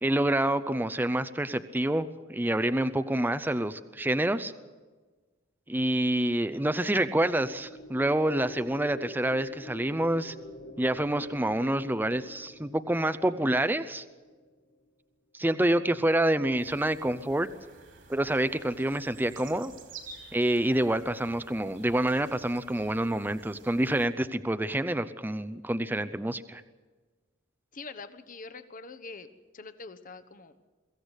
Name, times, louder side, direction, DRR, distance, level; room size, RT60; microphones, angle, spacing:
voice 1, 0.0-4.5 5.7-10.4 10.8-14.0 15.3-17.5 18.1-19.7 20.3-26.6, right 1 dB, 10° right, 11 dB, 0.6 m, -27 dB
sound 1, 6.5-14.7, left 1 dB, 90° left, 4.8 m, -48 dB
sound 2, 16.6-24.1, right 4 dB, 75° right, 3.0 m, -51 dB
voice 2, 27.7-29.3 29.5-30.6, left 4 dB, 45° left, 11 dB, 1.1 m, -44 dB
23.0 x 15.0 x 8.2 m, 1.3 s
head